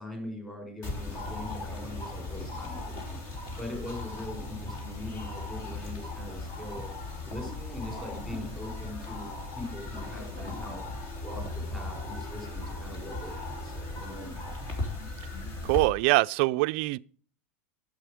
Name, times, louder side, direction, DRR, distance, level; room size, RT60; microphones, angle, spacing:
voice 1, 0.0-3.2 3.6-6.9 7.2-10.8 11.2-14.6, left 1 dB, 10° left, 4.7 m, -42 dB
sound 1, 0.8-15.9, left 2 dB, 45° left, 3.0 m, -37 dB
voice 2, 15.6-17.0, right 22 dB, 60° right, 0.4 m, -24 dB
9.0 x 7.5 x 5.0 m
supercardioid pair, 125°, 7 cm